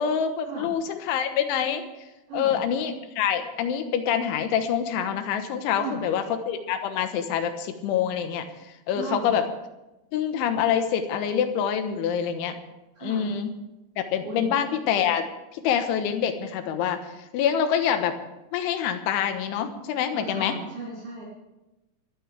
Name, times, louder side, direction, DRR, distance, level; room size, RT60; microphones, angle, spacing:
voice 1, 0.0-1.8 2.3-8.5 8.9-9.5 10.1-12.6 13.0-13.5 14.0-15.2 15.5-18.2 18.5-20.6, left 8 dB, 90° left, 8 dB, 3.6 m, -26 dB
voice 2, 8.9-9.3 13.0-13.3 14.2-14.5 20.1-21.2, right 3 dB, 55° right, -8 dB, 5.3 m, -35 dB
23.5 x 14.0 x 3.4 m, 1.0 s
omnidirectional pair, 5.3 m